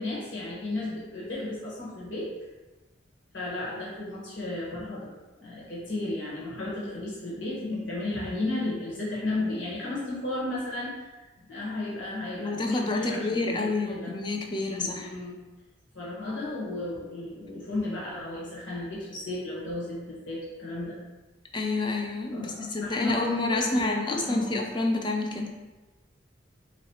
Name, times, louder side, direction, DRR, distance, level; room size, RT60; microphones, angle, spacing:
voice 1, 0.0-2.3 3.3-11.1 11.4-14.1 14.5-15.4 15.9-21.0 22.3-24.6, left 2 dB, 80° left, -7 dB, 1.4 m, -34 dB
voice 2, 12.4-15.1 21.5-25.6, left 2 dB, 25° left, 2 dB, 0.4 m, -29 dB
3.9 x 3.1 x 4.2 m, 1.1 s
head